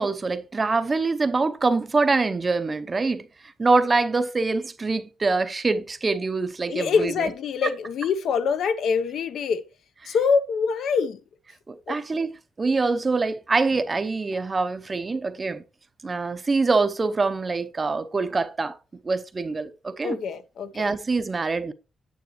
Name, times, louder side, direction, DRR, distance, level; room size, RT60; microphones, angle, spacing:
voice 1, 0.0-3.3 3.6-7.3 7.6-7.7 10.0-10.1 11.7-15.6 16.0-18.8 19.0-20.2 20.7-21.7, right 3 dB, 20° right, 0.7 m, -24 dB
voice 2, 6.7-9.6 10.1-11.2 11.9-12.0 20.0-21.0, left 5 dB, 60° left, 0.8 m, -25 dB
9.3 x 8.2 x 3.1 m
cardioid pair, 170°, 0 cm